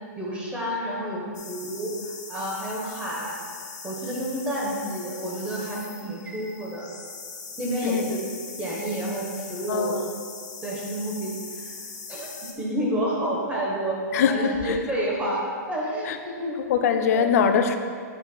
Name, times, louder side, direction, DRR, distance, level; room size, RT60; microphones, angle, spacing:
voice 1, 0.2-3.4 3.8-6.9 7.6-8.2 8.6-9.9 10.6-11.7 12.1-12.3 12.6-15.4 15.7-16.6 17.1-17.3, right 1 dB, 10° right, -4 dB, 1.0 m, -29 dB
sound 1, 1.3-12.5, left 4 dB, 85° left, 1.2 m, -41 dB
voice 2, 9.7-10.0 14.1-14.8 16.0-16.2 16.7-17.8, left 7 dB, 60° left, 7 dB, 0.4 m, -22 dB
7.9 x 5.5 x 2.2 m, 2.1 s
hypercardioid pair, 135°, 10 cm